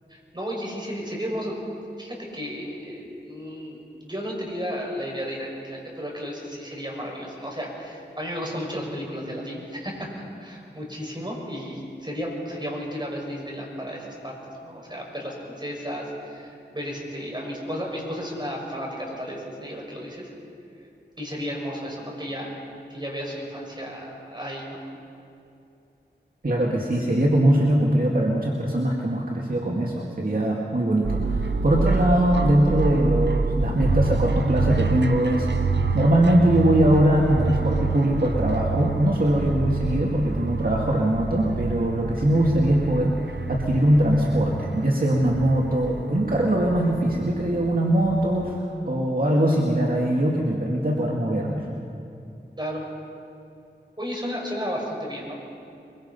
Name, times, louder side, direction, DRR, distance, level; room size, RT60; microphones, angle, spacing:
voice 1, 0.1-1.6 2.0-20.3 21.2-22.5 22.9-24.9 52.6-52.8 54.0-55.3, equal, 25° right, -2 dB, 5.9 m, -33 dB
voice 2, 26.4-43.2 43.5-51.7, right 1 dB, 55° right, -2 dB, 2.2 m, -21 dB
sound 1, 31.0-48.6, right 4 dB, 80° right, 0.8 m, -28 dB
23.5 x 23.0 x 5.5 m, 2.6 s
wide cardioid pair, 55°, 18 cm